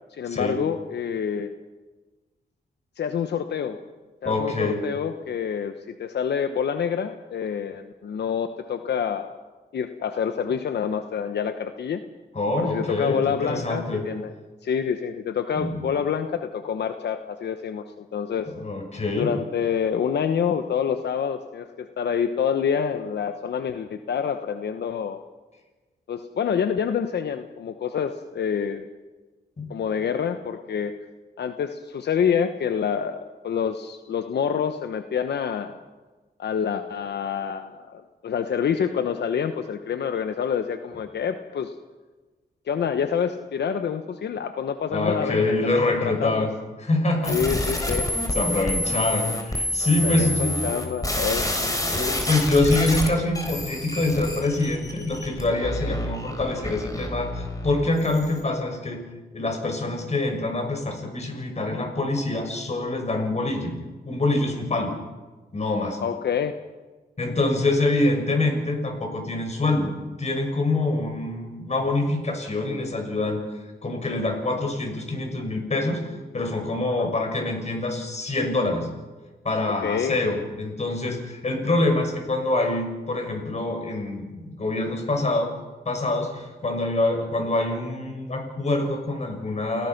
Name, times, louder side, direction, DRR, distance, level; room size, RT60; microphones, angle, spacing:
voice 1, 0.1-1.5 3.0-3.8 4.2-9.3 9.7-12.0 12.6-14.3 14.6-18.5 19.2-25.2 26.1-28.9 29.7-30.9 31.4-35.8 36.4-41.7 42.7-45.5 45.9-46.5 47.3-48.1 50.0-51.5 66.0-66.5 77.0-77.1 79.8-80.2, left 7 dB, 80° left, 8 dB, 1.0 m, -27 dB
voice 2, 4.2-4.8 12.3-14.0 15.5-15.8 18.5-19.3 29.6-29.7 44.9-46.5 46.8-47.8 48.3-50.6 51.5-59.0 59.3-63.7 64.0-64.9 65.5-66.0 67.2-73.4 73.8-78.9 79.4-85.5 85.8-89.9, left 2 dB, 40° left, 4 dB, 6.2 m, -25 dB
sound 1, 47.2-58.4, left 1 dB, 20° left, 4.3 m, -28 dB
29.0 x 18.0 x 5.9 m, 1.3 s
cardioid pair, 80°, 17 cm